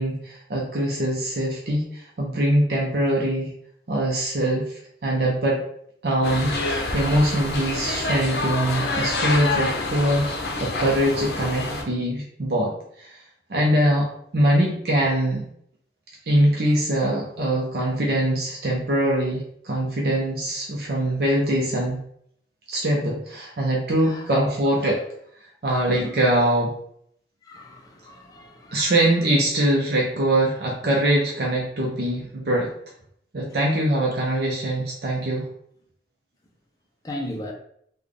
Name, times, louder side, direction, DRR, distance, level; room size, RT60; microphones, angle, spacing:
voice 1, 0.0-3.5 3.9-5.6 6.0-10.3 10.6-12.7 13.0-13.2 13.5-14.1 14.3-15.5 16.3-22.0 22.7-25.0 25.6-26.7 28.7-32.7 33.3-35.4, right 1 dB, 60° right, 0.6 m, -23 dB
sound 1, 6.2-11.8, left 2 dB, 65° left, 0.6 m, -27 dB
voice 2, 24.0-24.4 27.4-28.9 37.0-37.5, left 1 dB, 20° left, 0.4 m, -36 dB
3.3 x 2.2 x 3.8 m
head